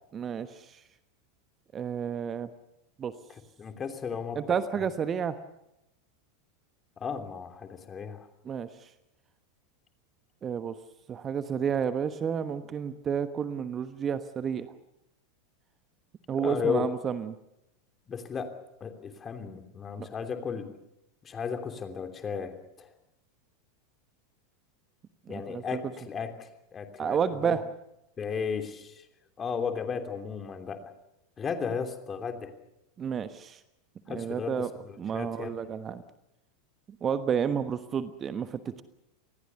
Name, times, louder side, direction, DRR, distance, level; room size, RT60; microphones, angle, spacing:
voice 1, 0.1-0.8 1.7-2.5 3.0-3.1 4.3-5.4 8.4-8.9 10.4-10.8 11.1-14.7 16.3-17.3 20.0-20.1 25.3-25.6 27.0-27.7 33.0-33.6 34.1-34.7 35.0-36.0 37.0-38.8, right 7 dB, 30° right, 12 dB, 1.2 m, -31 dB
voice 2, 3.6-4.4 4.7-4.9 7.0-8.3 16.4-16.9 18.1-18.5 18.8-20.7 21.2-22.9 25.3-27.5 28.2-29.0 29.4-30.8 31.4-32.5 34.1-35.6, left 6 dB, 25° left, 6 dB, 3.1 m, -34 dB
27.0 x 20.0 x 6.9 m, 0.86 s
figure-of-eight pair, 85°, 0 cm